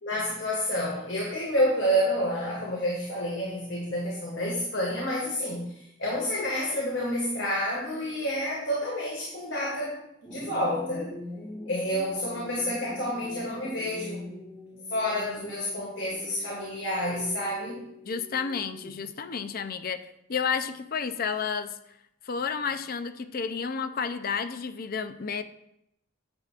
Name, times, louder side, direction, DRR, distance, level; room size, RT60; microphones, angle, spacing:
voice 1, 0.0-5.7 6.0-10.0 10.2-11.1 11.7-14.2 14.9-17.9, equal, 70° left, -3 dB, 1.9 m, -29 dB
sound 1, 10.2-19.2, left 1 dB, 5° left, 0.9 m, -43 dB
voice 2, 18.1-21.8 22.2-25.4, left 6 dB, 50° left, 10 dB, 0.5 m, -31 dB
9.7 x 8.1 x 2.5 m, 0.79 s
head